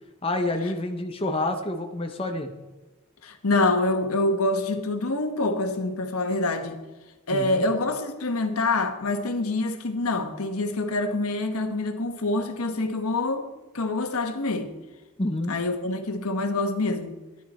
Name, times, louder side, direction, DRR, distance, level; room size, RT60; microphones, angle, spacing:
voice 1, 0.2-2.5 7.3-7.7 15.2-15.6, left 2 dB, 25° left, 0.8 m, -28 dB
voice 2, 3.2-6.8 7.3-13.5 13.7-14.7 15.5-17.1, left 2 dB, 80° left, 1.3 m, -26 dB
13.5 x 10.5 x 4.3 m
head